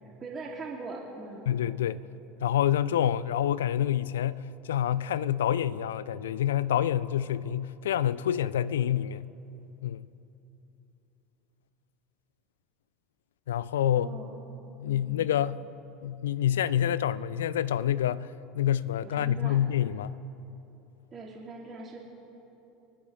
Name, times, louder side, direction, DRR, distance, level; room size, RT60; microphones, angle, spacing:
voice 1, 0.0-1.5 13.9-14.3 14.8-15.3 19.0-19.6 21.1-22.0, right 3 dB, 30° right, 2.8 m, -41 dB
voice 2, 1.5-2.0 2.4-9.2 9.8-10.1 13.5-14.1 14.8-15.6 16.0-18.3 18.5-20.1, left 10 dB, 75° left, 0.4 m, -27 dB
25.5 x 10.0 x 4.1 m
hypercardioid pair, 75°, 0 cm